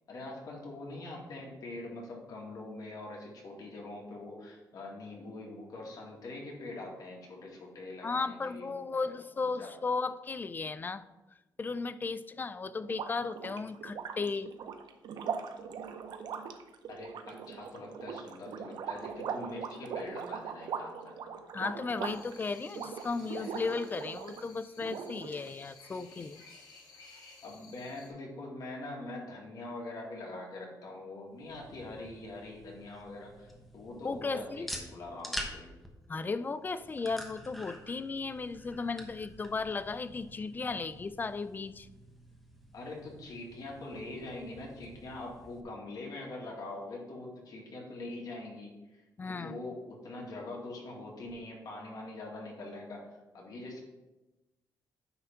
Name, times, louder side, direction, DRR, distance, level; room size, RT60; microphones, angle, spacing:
voice 1, 0.1-9.0 9.4-9.7 16.9-21.3 27.4-35.8 42.7-53.8, left 2 dB, 55° left, -2 dB, 2.0 m, -43 dB
voice 2, 8.0-11.0 11.6-14.5 21.5-26.4 34.0-34.7 36.1-41.9 49.2-49.6, left 4 dB, 25° left, 14 dB, 0.3 m, -35 dB
sound 1, 12.8-24.4 24.8-25.6, right 6 dB, 70° right, 0.7 m, -40 dB
sound 2, 22.0-28.1, left 4 dB, 85° left, 2.2 m, -55 dB
sound 3, 31.3-45.6, equal, ahead, 1.1 m, -47 dB
9.5 x 3.4 x 5.7 m, 1.0 s
cardioid pair, 120°, 8 cm